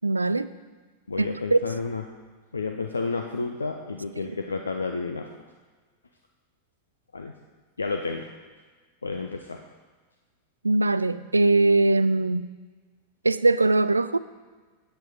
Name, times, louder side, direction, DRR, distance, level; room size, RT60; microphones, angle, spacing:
voice 1, 0.0-0.5 1.2-1.6 10.6-12.5 13.2-14.2, right 2 dB, 80° right, 15 dB, 0.3 m, -21 dB
voice 2, 1.1-2.0 2.5-5.3 7.1-7.3 7.8-8.3 9.0-9.6, left 4 dB, 75° left, 4 dB, 0.6 m, -31 dB
9.2 x 8.2 x 5.0 m, 1.4 s
figure-of-eight pair, 90°, 0 cm